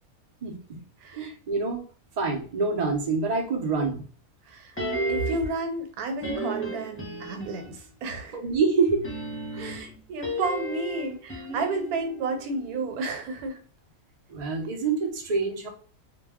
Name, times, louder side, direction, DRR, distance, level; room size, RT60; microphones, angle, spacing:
voice 1, 0.4-0.8 1.1-1.8 2.2-4.1 8.3-9.1 9.5-9.7 14.3-15.7, right 4 dB, 60° right, 1 dB, 0.4 m, -26 dB
sound 1, 4.8-5.6 6.2-7.9 8.9-13.1 13.4-13.5, right 1 dB, 15° left, 0.4 m, -34 dB
voice 2, 5.1-8.4 9.6-13.6, right 3 dB, 90° right, 5 dB, 1.1 m, -32 dB
2.3 x 2.1 x 3.4 m, 0.42 s
omnidirectional pair, 1.5 m